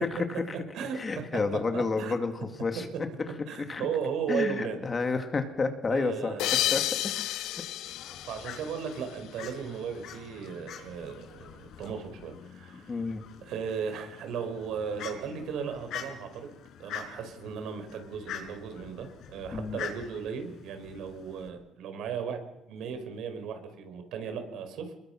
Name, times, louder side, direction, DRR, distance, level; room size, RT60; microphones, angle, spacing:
voice 1, 0.1-0.6 0.9-2.3 2.6-2.9 3.6-3.9 4.3-6.3 6.7-7.6 12.9-13.2 19.5-19.8, left 4 dB, 25° left, 6 dB, 2.3 m, -30 dB
voice 2, 1.7-2.1 3.5-4.8 5.9-6.7 8.2-12.9 13.4-22.4 22.7-24.9, right 6 dB, 65° right, 7 dB, 5.1 m, -36 dB
sound 1, 6.4-9.5, left 13 dB, 85° left, 1.3 m, -31 dB
Fowl, 7.9-21.5, left 8 dB, 60° left, 4.9 m, -45 dB
29.5 x 21.5 x 6.0 m, 0.93 s
cardioid pair, 155°, 0 cm